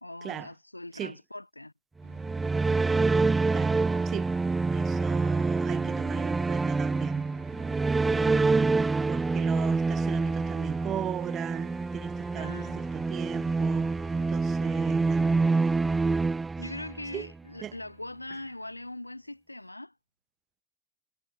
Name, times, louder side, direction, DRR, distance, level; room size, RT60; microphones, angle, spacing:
voice 1, 0.0-1.7 12.3-12.8 16.6-19.9, left 1 dB, 85° left, 1.5 m, -41 dB
sound 1, 2.0-17.2, right 3 dB, 10° right, 0.4 m, -26 dB
sound 2, 2.0-14.9, right 11 dB, 60° right, 3.0 m, -53 dB
voice 2, 3.5-4.3 4.7-7.3 9.1-13.9 14.3-15.7 17.1-17.3 17.6-17.7, right 11 dB, 30° right, 1.5 m, -38 dB
figure-of-eight pair, 90°, 0 cm